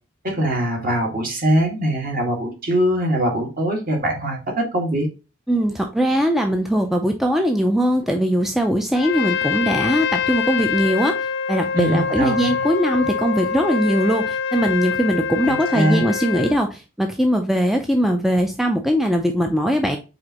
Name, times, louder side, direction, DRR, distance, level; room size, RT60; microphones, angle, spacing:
voice 1, 0.2-5.1 11.7-12.5 15.4-16.0, equal, 45° right, 0 dB, 1.7 m, -22 dB
voice 2, 5.5-11.1 11.5-20.0, equal, ahead, 3 dB, 0.4 m, -20 dB
Trumpet, 8.9-16.6, left 6 dB, 60° left, 0.6 m, -25 dB
5.1 x 3.5 x 2.9 m, 0.31 s
head